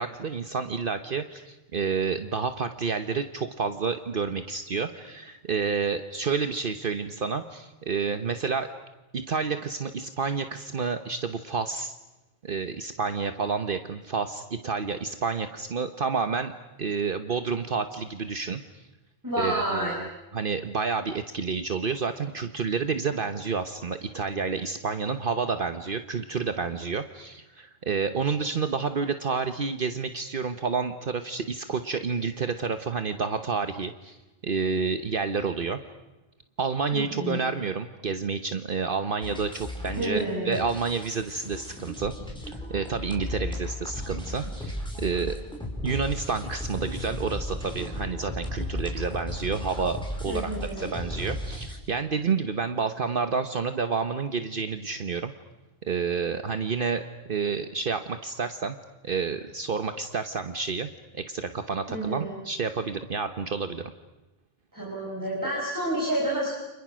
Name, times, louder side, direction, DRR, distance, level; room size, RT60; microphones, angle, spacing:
voice 1, 0.0-8.7 9.1-11.9 12.4-16.5 16.8-18.9 19.4-34.2 34.4-35.8 36.6-42.1 42.5-45.4 45.8-50.5 50.8-55.3 55.9-57.0 57.3-58.8 59.0-60.9 61.1-63.9, right 5 dB, 55° right, 9 dB, 1.2 m, -29 dB
voice 2, 19.2-19.9 36.9-37.4 40.0-40.6 50.3-50.9 61.9-62.4 64.7-66.5, right 1 dB, 15° right, -4 dB, 6.0 m, -29 dB
sound 1, 39.2-51.8, left 1 dB, 5° left, 4.9 m, -35 dB
30.0 x 27.0 x 6.3 m, 1.1 s
omnidirectional pair, 1.1 m